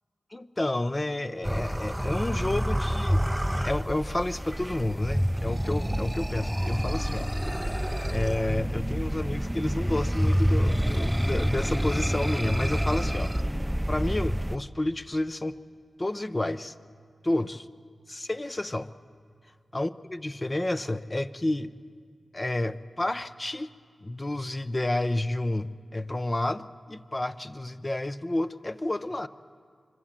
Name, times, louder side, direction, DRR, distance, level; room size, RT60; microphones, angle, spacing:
voice 1, 0.3-3.2 3.6-7.3 8.1-13.3 13.9-15.6 16.0-16.7 17.2-17.6 18.1-18.9 19.7-21.7 22.3-23.7 24.0-29.3, left 1 dB, 30° left, 12 dB, 0.8 m, -30 dB
sound 1, 1.4-14.6, equal, 5° right, 0.6 m, -27 dB
24.5 x 24.0 x 7.5 m, 2.1 s
cardioid pair, 60°, 0 cm